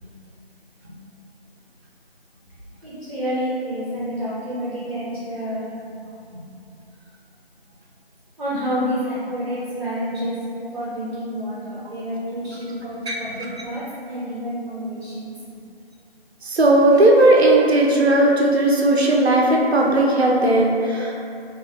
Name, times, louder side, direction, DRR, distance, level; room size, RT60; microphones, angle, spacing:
voice 1, 2.8-5.7 6.3-6.4 8.4-10.4 10.7-15.3, equal, 50° right, -9 dB, 0.8 m, -29 dB
voice 2, 16.4-21.1, right 1 dB, 90° right, -1 dB, 0.6 m, -16 dB
3.4 x 2.5 x 2.5 m, 2.6 s
figure-of-eight pair, 165°, 31 cm